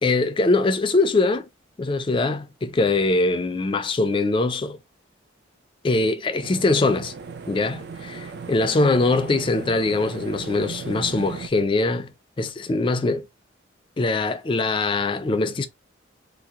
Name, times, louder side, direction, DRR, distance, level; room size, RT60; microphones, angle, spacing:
voice 1, 0.0-1.5 1.8-4.8 5.8-7.1 7.5-13.3 14.0-15.7, left 3 dB, 25° left, 0.3 m, -22 dB
sound 1, 6.4-11.5, right 5 dB, 55° right, 0.3 m, -37 dB
2.8 x 2.0 x 3.5 m
head